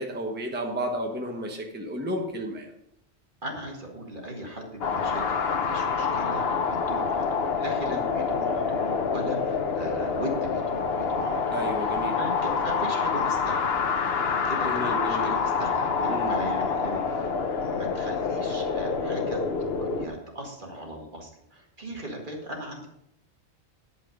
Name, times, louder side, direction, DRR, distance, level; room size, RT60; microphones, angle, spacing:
voice 1, 0.0-2.7 7.9-8.1 11.5-12.2 14.6-15.4 16.1-16.4, equal, 10° right, 2 dB, 1.0 m, -32 dB
voice 2, 3.4-13.7 14.4-22.9, right 1 dB, 50° right, 0 dB, 2.0 m, -38 dB
sound 1, 4.8-20.1, left 5 dB, 75° left, 1.1 m, -27 dB
10.0 x 5.7 x 5.1 m, 0.76 s
omnidirectional pair, 1.1 m